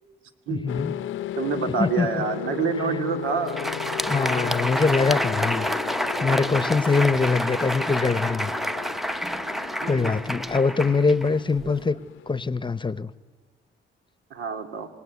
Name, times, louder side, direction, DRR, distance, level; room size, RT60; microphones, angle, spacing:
voice 1, 0.5-0.9 1.7-2.1 2.7-3.0 4.1-5.7 6.2-8.5 9.8-12.0 12.3-13.1, left 4 dB, 25° left, 16 dB, 0.9 m, -23 dB
sound 1, 0.7-12.4, left 13 dB, 80° left, 0.8 m, -35 dB
voice 2, 1.4-3.6 9.8-10.1 11.6-11.7 14.3-14.9, right 6 dB, 85° right, 5 dB, 2.5 m, -27 dB
Crowd, 3.3-11.8, equal, ahead, 0.7 m, -28 dB
27.0 x 19.0 x 9.6 m, 1.4 s
cardioid pair, 90°, 20 cm